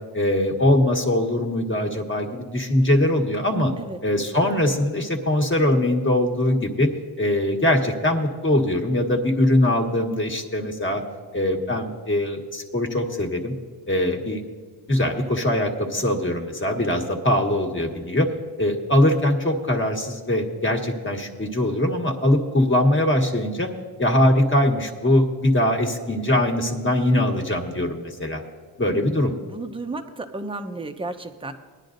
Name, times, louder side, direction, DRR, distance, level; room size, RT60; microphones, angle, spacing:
voice 1, 0.1-3.7 4.0-6.9 7.2-11.0 11.3-13.5 13.9-14.4 14.9-18.3 18.6-23.7 24.0-28.4 28.8-29.3, left 1 dB, 30° left, 2 dB, 1.5 m, -22 dB
voice 2, 29.5-31.5, right 2 dB, 15° right, 6 dB, 0.7 m, -33 dB
20.0 x 10.5 x 2.6 m, 1.5 s
cardioid pair, 115°, 42 cm